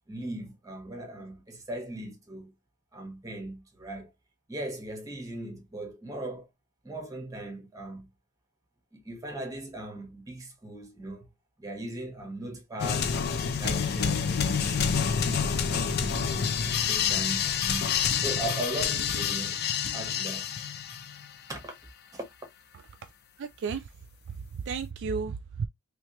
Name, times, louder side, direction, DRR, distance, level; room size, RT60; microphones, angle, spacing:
voice 1, 0.1-2.5 2.9-4.1 4.5-6.5 6.8-8.1 8.9-11.3 11.6-14.2 14.6-17.9 18.2-19.6 19.9-20.5 21.5-21.7 22.1-22.3, right 1 dB, 15° right, 1.1 m, -38 dB
sound 1, 12.8-21.3, left 7 dB, 45° left, 0.5 m, -28 dB
voice 2, 23.4-23.9 24.5-25.7, right 5 dB, 55° right, 0.3 m, -33 dB
3.2 x 3.2 x 2.9 m
head